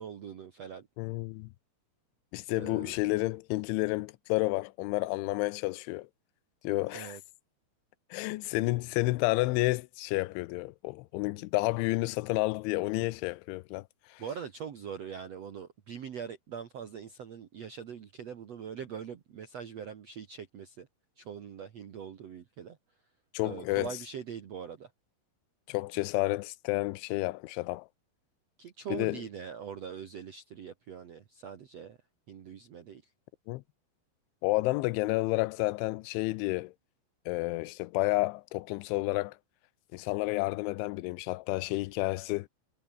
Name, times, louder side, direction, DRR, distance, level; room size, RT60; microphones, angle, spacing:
voice 1, 0.0-0.9 2.5-3.0 6.9-7.2 14.2-20.9 21.2-22.8 23.4-24.9 28.6-32.0 32.3-33.0, right 7 dB, 70° right, 1.6 m, -42 dB
voice 2, 1.0-1.5 2.3-6.1 6.6-7.2 8.1-13.8 14.1-14.2 23.3-23.9 25.7-27.9 28.9-29.2 33.5-33.6 34.4-36.7 37.3-39.4 39.9-42.5, left 21 dB, 85° left, 3.1 m, -30 dB
omnidirectional pair, 5.3 m